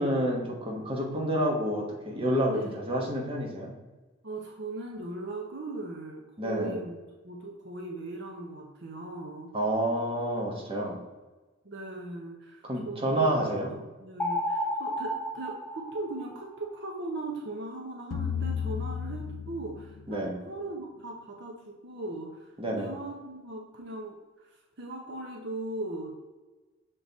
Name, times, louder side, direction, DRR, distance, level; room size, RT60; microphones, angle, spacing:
voice 1, 0.0-3.7 6.4-6.8 9.5-11.0 12.6-13.7 20.1-20.4 22.6-22.9, right 1 dB, 25° right, -1 dB, 1.2 m, -29 dB
voice 2, 2.5-2.9 4.2-7.0 7.2-9.5 11.6-13.3 13.7-24.2 24.8-26.3, right 2 dB, 55° right, 0 dB, 0.8 m, -38 dB
sound 1, 14.2-16.6, equal, 5° left, 0.4 m, -32 dB
sound 2, 18.1-20.3, left 7 dB, 80° left, 0.4 m, -33 dB
6.4 x 3.8 x 4.0 m, 1.2 s
head